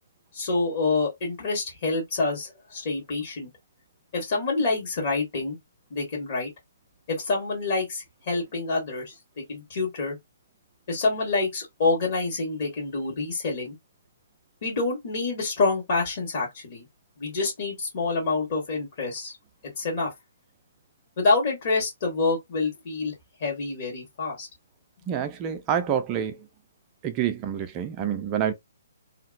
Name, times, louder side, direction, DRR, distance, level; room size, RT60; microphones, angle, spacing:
voice 1, 0.3-3.5 4.1-5.6 5.9-6.5 7.1-10.2 10.9-13.7 14.6-16.9 17.2-19.4 19.6-20.1 21.2-23.1 23.4-24.5, left 3 dB, 45° left, 1.5 m, -27 dB
voice 2, 25.1-26.4 27.0-28.5, right 9 dB, 25° right, 0.5 m, -27 dB
2.8 x 2.5 x 2.4 m
figure-of-eight pair, 130°, 0 cm